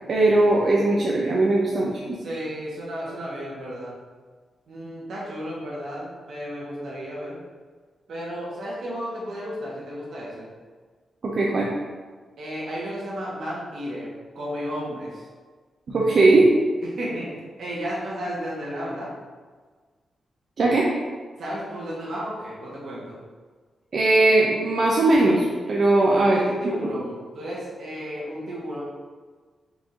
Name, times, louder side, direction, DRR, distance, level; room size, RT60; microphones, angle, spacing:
voice 1, 0.1-2.2 11.2-11.7 15.9-16.5 20.6-20.9 23.9-26.4, right 2 dB, 60° right, -4 dB, 0.6 m, -19 dB
voice 2, 2.2-3.9 4.7-7.4 8.1-10.5 12.4-15.3 16.8-19.1 21.4-23.2 26.3-28.8, equal, 75° right, -5 dB, 1.5 m, -33 dB
4.9 x 2.7 x 3.7 m, 1.5 s
cardioid pair, 75°, 0 cm